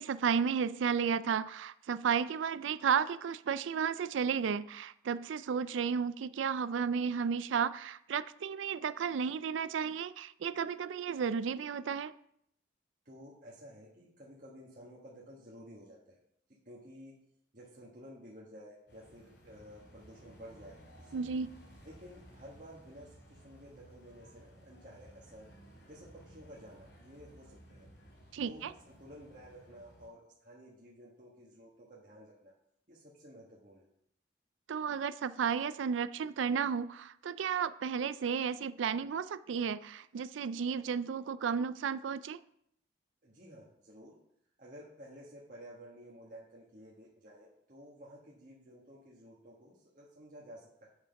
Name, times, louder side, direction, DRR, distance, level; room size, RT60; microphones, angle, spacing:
voice 1, 0.0-12.1 21.1-21.5 28.3-28.7 34.7-42.4, right 6 dB, 85° right, 15 dB, 0.4 m, -33 dB
voice 2, 13.0-16.2 16.6-17.1 17.5-21.3 21.8-25.5 25.9-27.9 28.4-32.5 32.9-33.8 43.2-44.1 44.6-50.9, equal, 45° right, -5 dB, 1.5 m, -53 dB
sound 1, 18.9-30.1, equal, 70° left, 3.1 m, -57 dB
8.0 x 5.7 x 5.2 m, 0.71 s
head